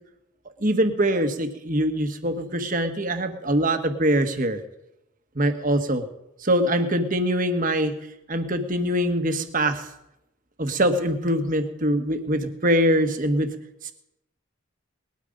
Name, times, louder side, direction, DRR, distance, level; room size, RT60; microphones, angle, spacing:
voice 1, 0.6-4.6 5.3-6.0 6.4-8.0 8.3-9.9 10.6-13.5 13.8-13.9, right 1 dB, 40° right, 7 dB, 1.3 m, -23 dB
20.0 x 12.5 x 5.3 m, 0.89 s
head